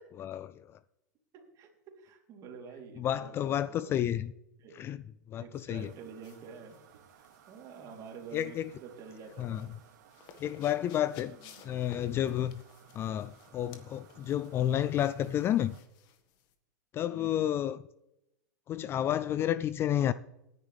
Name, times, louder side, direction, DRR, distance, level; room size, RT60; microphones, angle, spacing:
voice 1, 0.2-0.5 3.0-4.3 4.8-5.0 5.3-5.9 8.3-8.7 9.4-9.7 10.4-11.4 11.6-12.6 12.9-15.8 16.9-17.8 18.7-20.1, left 11 dB, 25° left, 0.3 m, -30 dB
voice 2, 1.3-1.7 2.0-3.9 4.6-4.8 5.4-6.8 7.1-9.7 11.4-11.7 17.1-17.5, right 6 dB, 35° right, 3.5 m, -48 dB
sound 1, 5.7-15.8, right 10 dB, 65° right, 2.2 m, -60 dB
sound 2, 6.2-16.5, left 6 dB, 45° left, 1.7 m, -56 dB
18.5 x 10.5 x 3.5 m
supercardioid pair, 140°, 10 cm